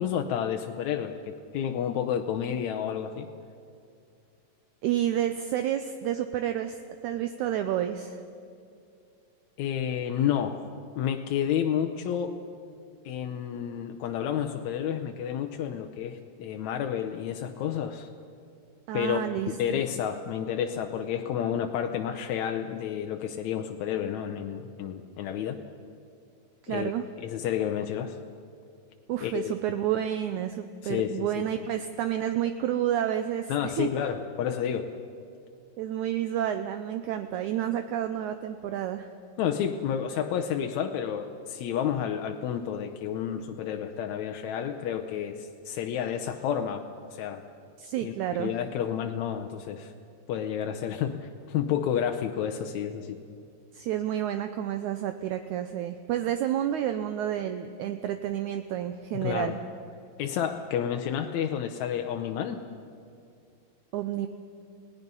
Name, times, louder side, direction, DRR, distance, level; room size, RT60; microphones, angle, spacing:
voice 1, 0.0-3.3 9.6-10.6 11.0-12.4 13.0-18.1 18.9-19.2 19.6-25.6 26.7-26.9 27.2-28.2 29.2-29.5 30.8-31.4 33.5-34.9 39.4-46.8 47.1-47.4 48.0-48.1 48.4-49.9 50.3-53.2 59.1-59.5 60.2-62.6, left 9 dB, 75° left, 5 dB, 1.8 m, -30 dB
voice 2, 4.8-8.2 18.9-19.8 26.6-27.1 29.1-33.9 35.8-39.1 47.8-48.5 53.7-59.6 63.9-64.3, right 11 dB, 75° right, 8 dB, 1.8 m, -30 dB
29.0 x 18.0 x 5.5 m, 2.4 s
omnidirectional pair, 4.0 m